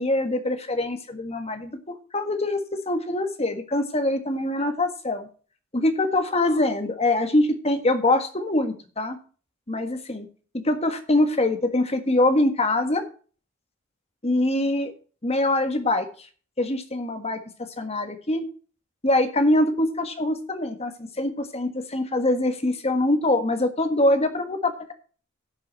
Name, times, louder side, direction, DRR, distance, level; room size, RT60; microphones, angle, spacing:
voice 1, 0.0-5.3 5.7-9.2 9.7-10.3 10.6-13.1 14.2-14.9 15.2-16.1 16.6-17.4 17.8-18.5 19.0-24.9, left 1 dB, 30° left, 8 dB, 1.6 m, -24 dB
11.5 x 6.4 x 5.4 m, 0.39 s
head